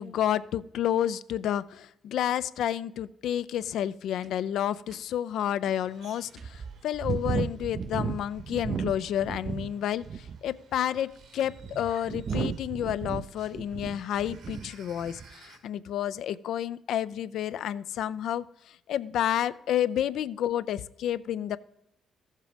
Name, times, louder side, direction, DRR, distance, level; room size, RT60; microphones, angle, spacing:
voice 1, 0.0-18.4 18.9-21.6, left 10 dB, 75° left, 15 dB, 0.4 m, -30 dB
sound 1, 4.2-4.3 4.9-5.0 5.7-5.8 6.4-9.7 10.0-10.5 11.2-14.7 15.0-15.3, right 6 dB, 50° right, 0.5 m, -34 dB
sound 2, 5.6-15.6, right 4 dB, 80° right, 2.2 m, -57 dB
14.0 x 7.4 x 5.1 m, 0.78 s
cardioid pair, 90°, 0 cm